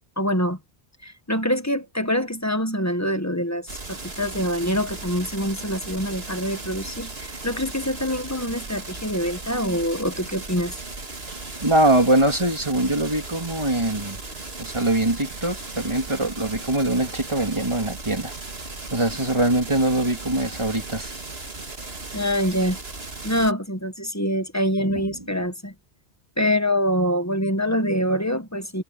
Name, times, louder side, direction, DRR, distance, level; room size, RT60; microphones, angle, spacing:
voice 1, 0.2-0.6 1.0-10.8 22.1-22.8 23.2-25.7 26.4-28.8, equal, 15° left, 1.4 m, -25 dB
sound 1, 3.7-23.5, right 3 dB, 60° right, 2.8 m, -36 dB
voice 2, 11.3-14.2 14.6-18.3 18.9-21.1, right 1 dB, 25° right, 3.0 m, -23 dB
omnidirectional pair, 1.1 m